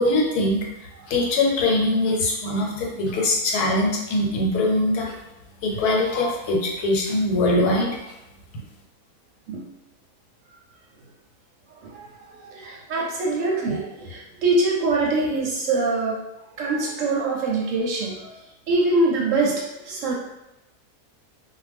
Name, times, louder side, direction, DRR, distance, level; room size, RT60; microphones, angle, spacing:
voice 1, 0.0-5.1 5.6-7.9, left 2 dB, 85° left, -1 dB, 1.2 m, -22 dB
voice 2, 11.7-16.2 16.6-20.2, right 2 dB, 70° right, -3 dB, 0.8 m, -24 dB
2.5 x 2.1 x 3.3 m, 0.94 s
omnidirectional pair, 1.6 m